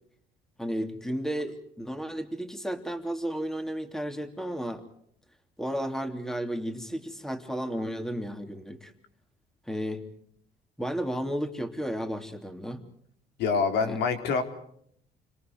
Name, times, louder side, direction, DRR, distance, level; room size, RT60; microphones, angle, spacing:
voice 1, 0.6-4.8 5.6-8.9 9.7-10.0 10.8-12.8 13.8-14.0, equal, 5° left, 6 dB, 3.1 m, -33 dB
voice 2, 13.4-14.4, left 5 dB, 80° left, 5 dB, 4.0 m, -25 dB
29.5 x 26.0 x 4.7 m, 0.68 s
cardioid pair, 110°, 17 cm